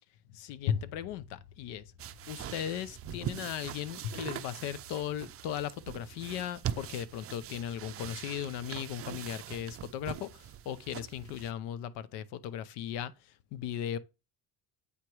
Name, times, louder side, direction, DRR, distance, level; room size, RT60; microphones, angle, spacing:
voice 1, 0.3-1.8 2.3-13.1 13.5-14.0, left 10 dB, 80° left, 0.7 m, -37 dB
sound 1, 2.0-11.5, right 10 dB, 35° right, 0.5 m, -42 dB
8.3 x 2.9 x 4.7 m
cardioid pair, 110°, 40 cm